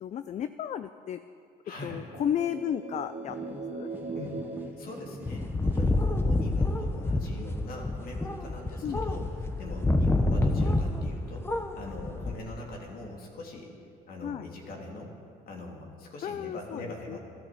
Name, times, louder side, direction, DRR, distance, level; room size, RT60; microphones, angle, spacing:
voice 1, 0.0-1.2 1.8-3.9 8.8-9.3 14.2-14.5 16.2-17.2, left 9 dB, 45° left, 12 dB, 0.5 m, -33 dB
voice 2, 1.6-2.0 4.1-4.4 4.8-13.8 14.1-15.2 15.5-17.2, left 2 dB, 60° left, 0 dB, 3.0 m, -42 dB
sound 1, 1.9-5.8, right 3 dB, 40° right, 1.1 m, -40 dB
sound 2, 3.3-6.0 6.4-12.7, right 1 dB, 10° right, 1.7 m, -50 dB
sound 3, 5.3-11.2 11.4-12.4, left 2 dB, 15° left, 1.0 m, -28 dB
14.0 x 12.5 x 7.7 m, 2.4 s
cardioid pair, 110°, 17 cm